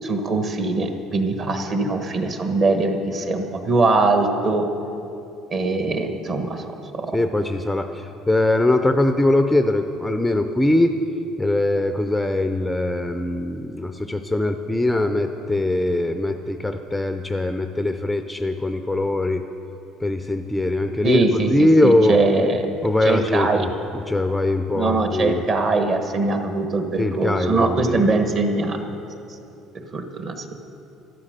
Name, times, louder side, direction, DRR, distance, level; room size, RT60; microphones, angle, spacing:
voice 1, 0.0-4.7 5.5-6.7 21.0-22.7 23.0-23.7 24.7-28.8 29.9-30.4, right 3 dB, 35° right, 6 dB, 1.2 m, -22 dB
voice 2, 7.1-11.0 11.4-19.4 20.0-22.2 22.8-25.4 27.0-28.1, left 1 dB, 5° left, 7 dB, 0.5 m, -21 dB
12.5 x 11.5 x 6.6 m, 2.8 s
cardioid pair, 150°, 0 cm